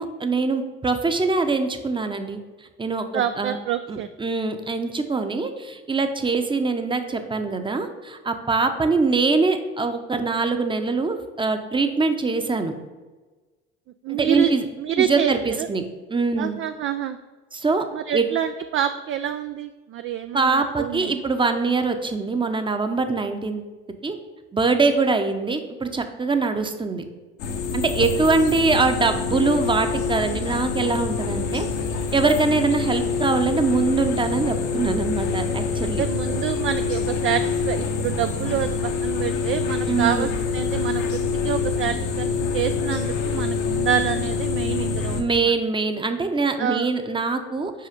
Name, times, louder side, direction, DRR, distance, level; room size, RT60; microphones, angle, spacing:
voice 1, 0.0-2.4 2.8-3.6 3.9-12.7 14.1-14.7 15.0-15.8 16.1-16.6 17.5-17.8 18.1-18.2 20.3-23.6 24.0-24.2 24.5-27.0 27.7-31.7 32.1-36.0 39.9-40.3 45.2-47.9, right 3 dB, 15° right, 7 dB, 0.8 m, -23 dB
voice 2, 3.1-4.1 14.0-14.5 14.8-15.3 15.6-15.7 16.4-17.2 17.9-21.2 35.8-45.5 46.6-46.9, right 10 dB, 40° right, 9 dB, 0.4 m, -27 dB
sound 1, 27.4-45.2, left 5 dB, 60° left, 1.0 m, -26 dB
5.7 x 4.8 x 5.1 m, 1.3 s
hypercardioid pair, 65°, 34 cm